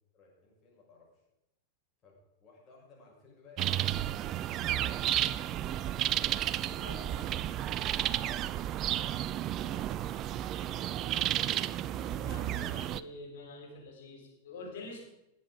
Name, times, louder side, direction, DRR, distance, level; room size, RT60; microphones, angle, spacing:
voice 1, 0.1-1.2 2.0-2.1 2.4-5.9 6.7-7.8 8.1-8.3 8.6-9.0 9.5-11.6, left 3 dB, 30° left, -3 dB, 6.3 m, -59 dB
sound 1, 3.6-13.0, right 12 dB, 35° right, 0.4 m, -32 dB
voice 2, 6.7-7.3 8.8-9.1 12.0-15.0, left 3 dB, 55° left, 0 dB, 4.5 m, -47 dB
19.0 x 7.9 x 5.1 m, 0.90 s
figure-of-eight pair, 90°, 0 cm